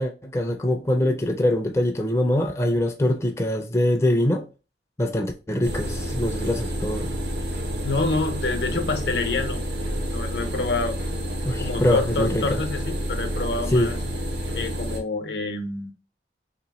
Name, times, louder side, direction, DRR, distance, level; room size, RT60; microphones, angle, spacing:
voice 1, 0.0-4.5 5.0-7.1 11.4-12.6 13.7-13.9, left 1 dB, 15° left, 0.4 m, -23 dB
sound 1, 5.6-15.0, equal, 80° right, 0.9 m, -29 dB
voice 2, 7.8-11.0 11.6-14.0 14.5-15.9, left 3 dB, 75° left, 0.7 m, -27 dB
3.0 x 2.9 x 4.0 m
head